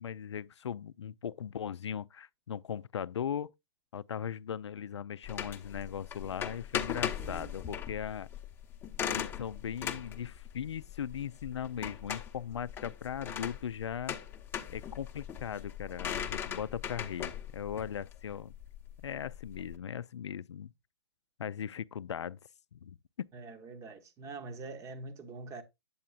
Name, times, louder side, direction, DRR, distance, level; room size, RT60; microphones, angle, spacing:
voice 1, 0.0-3.5 3.9-8.3 9.0-14.2 14.7-18.5 19.0-20.7 21.4-22.4 22.7-23.0, left 8 dB, 80° left, 0.4 m, -38 dB
sound 1, 5.2-19.7, left 8 dB, 15° left, 0.8 m, -39 dB
voice 2, 7.2-7.6 23.3-25.6, right 3 dB, 20° right, 0.9 m, -44 dB
8.5 x 7.6 x 2.4 m
hypercardioid pair, 125°, 14 cm